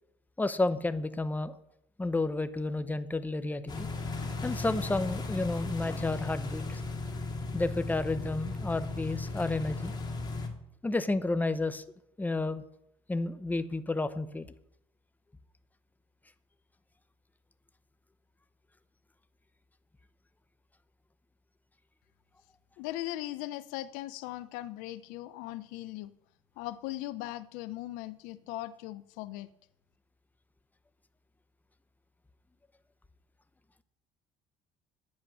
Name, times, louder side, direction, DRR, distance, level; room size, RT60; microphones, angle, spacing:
voice 1, 0.4-1.5 2.0-3.9 4.4-6.8 7.5-9.9 10.8-11.8 12.2-12.6 13.1-14.5, left 2 dB, 10° left, 12 dB, 0.9 m, -31 dB
sound 1, 3.7-10.5, left 3 dB, 30° left, 2.5 m, -36 dB
voice 2, 22.8-26.1 26.6-29.5, left 15 dB, 80° left, 15 dB, 0.6 m, -39 dB
9.8 x 8.6 x 6.1 m, 0.76 s
supercardioid pair, 75°, 14 cm